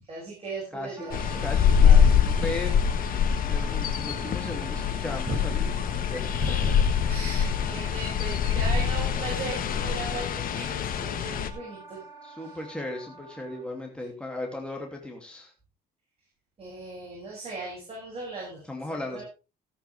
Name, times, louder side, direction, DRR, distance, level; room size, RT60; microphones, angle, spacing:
voice 1, 0.1-2.6 5.3-5.4 6.3-12.0 12.4-12.6 16.6-18.6 19.0-19.2, right 2 dB, 35° right, -4 dB, 6.8 m, -38 dB
voice 2, 0.7-2.7 3.4-6.4 12.2-15.5 18.6-19.2, left 2 dB, 5° left, 0 dB, 2.8 m, -37 dB
Wind instrument woodwind instrument, 1.0-13.9, right 4 dB, 20° right, 4.8 m, -45 dB
sound 1, 1.1-11.5, left 7 dB, 55° left, 1.5 m, -24 dB
16.0 x 9.0 x 3.5 m, 0.31 s
cardioid pair, 110°, 17 cm